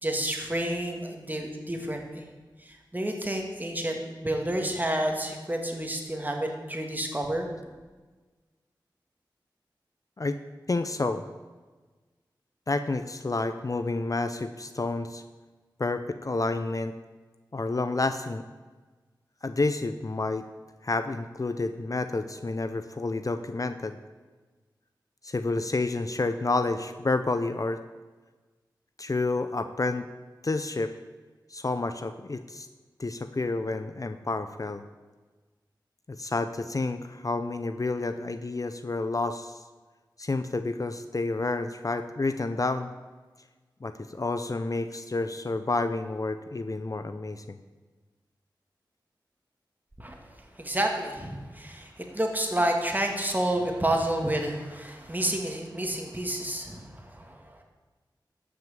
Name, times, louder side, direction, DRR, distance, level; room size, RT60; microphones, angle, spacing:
voice 1, 0.0-2.3 2.6-7.5 50.0-50.2 50.6-57.6, right 1 dB, 20° right, 2 dB, 2.3 m, -30 dB
voice 2, 10.7-11.2 12.7-15.2 15.8-16.9 17.5-18.4 19.4-20.5 20.8-24.0 25.2-27.8 29.0-30.1 30.4-30.9 31.5-32.7 33.0-34.8 36.1-39.6 40.2-42.9 43.8-47.6, left 3 dB, 45° left, 10 dB, 0.6 m, -29 dB
12.0 x 6.4 x 7.5 m, 1.3 s
cardioid pair, 40°, 8 cm